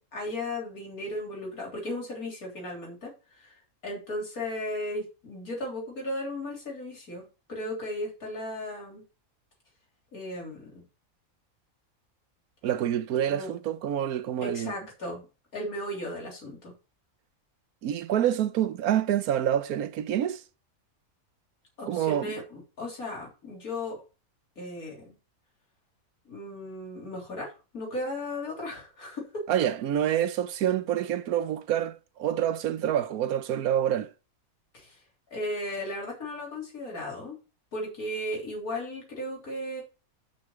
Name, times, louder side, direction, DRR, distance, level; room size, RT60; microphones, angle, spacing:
voice 1, 0.1-3.5 3.8-9.0 10.1-10.8 13.3-13.5 14.4-15.2 15.5-16.7 21.8-24.0 24.6-25.2 26.3-29.4 34.7-35.0 35.3-37.4 37.7-39.8, left 1 dB, 80° left, 3.8 m, -36 dB
voice 2, 12.6-14.7 17.8-20.4 21.9-22.3 29.5-34.1, right 10 dB, 90° right, 1.2 m, -27 dB
6.3 x 5.8 x 7.3 m
omnidirectional pair, 1.5 m